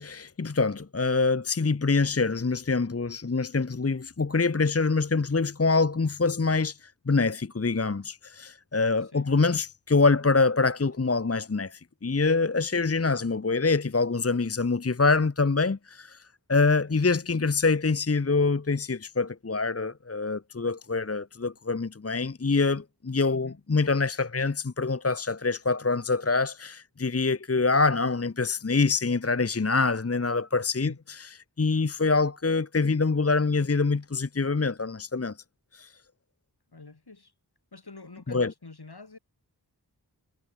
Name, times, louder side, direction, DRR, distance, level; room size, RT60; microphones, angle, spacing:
voice 1, 0.0-30.9 31.6-35.4 35.7-35.9 38.3-38.5, left 4 dB, 35° left, 1.0 m, -25 dB
voice 2, 16.9-17.3 23.3-23.6 30.8-31.0 36.7-37.3 37.7-39.2, left 3 dB, 70° left, 6.2 m, -46 dB
wide cardioid pair, 55°, 41 cm